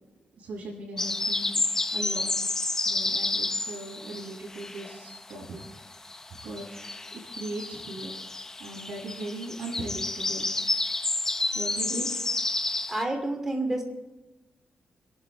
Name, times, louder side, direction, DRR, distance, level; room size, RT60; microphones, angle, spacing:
voice 1, 0.4-1.6 1.9-2.3 2.8-6.1 6.4-6.7 7.3-8.2 8.6-10.5 11.5-12.1, right 2 dB, 90° right, -7 dB, 6.7 m, -38 dB
sound 1, 1.0-5.3 5.6-13.0, left 2 dB, 20° left, 0.6 m, -30 dB
voice 2, 12.9-13.8, right 2 dB, 20° right, 3 dB, 2.9 m, -29 dB
29.5 x 12.0 x 3.5 m, 1.1 s
wide cardioid pair, 155°, 3 cm